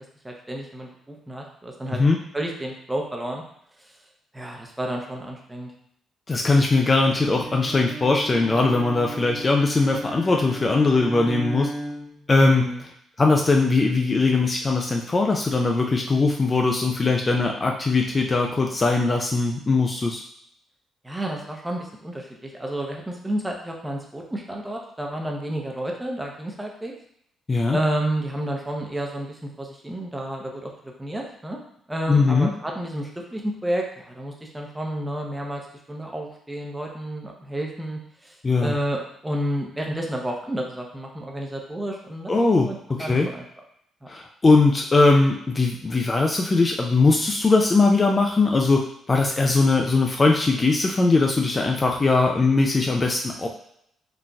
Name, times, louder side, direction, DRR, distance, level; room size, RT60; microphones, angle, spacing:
voice 1, 0.2-2.0 2.3-3.4 3.8-3.9 4.3-5.7 12.4-12.8 21.0-26.9 27.7-31.6 31.9-35.6 35.9-42.3 42.6-43.4, right 1 dB, 10° right, 0 dB, 0.6 m, -30 dB
voice 2, 6.3-11.7 12.3-12.7 13.2-20.2 27.5-27.8 32.1-32.5 38.4-38.7 42.3-43.3 44.1-53.5, left 3 dB, 25° left, 1 dB, 0.3 m, -20 dB
Bowed string instrument, 7.0-12.3, right 1 dB, 40° right, 1.0 m, -35 dB
3.8 x 2.5 x 2.3 m, 0.71 s
cardioid pair, 90°, 0 cm